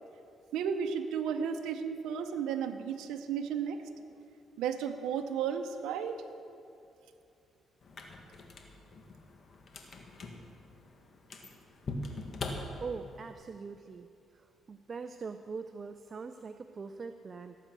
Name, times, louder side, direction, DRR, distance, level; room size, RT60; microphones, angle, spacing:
voice 1, 0.5-3.8 4.6-6.2, right 7 dB, 90° right, 6 dB, 0.7 m, -33 dB
sound 1, 7.8-13.3, left 2 dB, 50° left, 1.6 m, -43 dB
voice 2, 12.8-14.1 14.3-17.6, right 4 dB, 40° right, 8 dB, 0.5 m, -42 dB
17.5 x 8.2 x 6.1 m, 2.6 s
cardioid pair, 90°, 0 cm